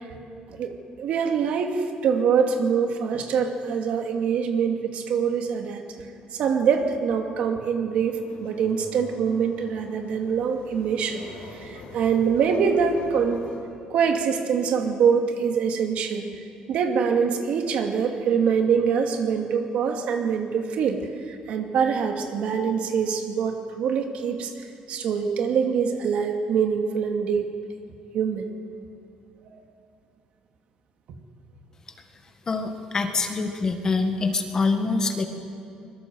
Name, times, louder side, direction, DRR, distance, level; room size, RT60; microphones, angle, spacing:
voice 1, 0.5-11.2 11.5-13.4 13.9-16.4 16.7-21.0 21.3-24.5 24.9-27.5 28.1-28.5 29.5-29.6, right 6 dB, 55° right, 4 dB, 2.5 m, -24 dB
sound 1, 7.9-13.6, left 3 dB, 85° left, 4.6 m, -44 dB
voice 2, 32.5-35.3, left 4 dB, 25° left, 6 dB, 1.8 m, -25 dB
24.5 x 22.5 x 7.9 m, 2.5 s
cardioid pair, 170°, 2 cm